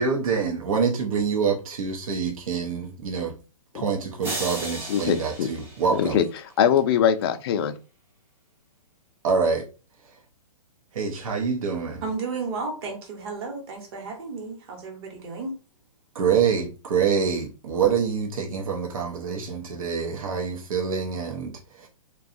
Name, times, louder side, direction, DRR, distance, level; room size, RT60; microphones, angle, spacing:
voice 1, 0.0-3.3 3.7-6.2 9.2-9.7 10.9-12.0 16.1-21.9, right 6 dB, 70° right, 0.7 m, -26 dB
sound 1, 4.2-6.6, right 2 dB, 10° right, 0.5 m, -35 dB
voice 2, 4.9-5.5 5.9-6.2 6.6-7.7, left 9 dB, 45° left, 0.4 m, -22 dB
voice 3, 12.0-15.6, right 4 dB, 45° right, 1.0 m, -33 dB
2.7 x 2.3 x 2.5 m
hypercardioid pair, 140°, 18 cm